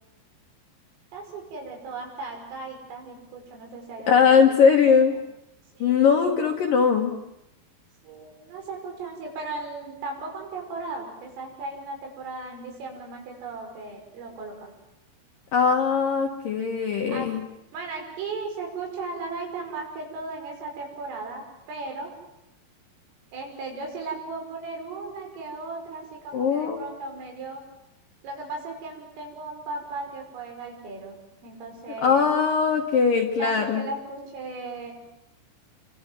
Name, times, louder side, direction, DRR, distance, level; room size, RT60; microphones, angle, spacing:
voice 1, 1.1-5.0 5.7-6.4 8.0-14.7 17.1-17.3 17.7-22.1 23.3-27.6 28.2-31.2 31.4-32.3 33.4-34.9, right 3 dB, 85° right, 2 dB, 8.3 m, -36 dB
voice 2, 4.1-5.1 5.8-7.1 15.5-17.4 26.3-26.8 32.0-33.8, left 6 dB, 60° left, 2 dB, 2.5 m, -20 dB
29.0 x 25.0 x 7.7 m, 0.85 s
omnidirectional pair, 5.7 m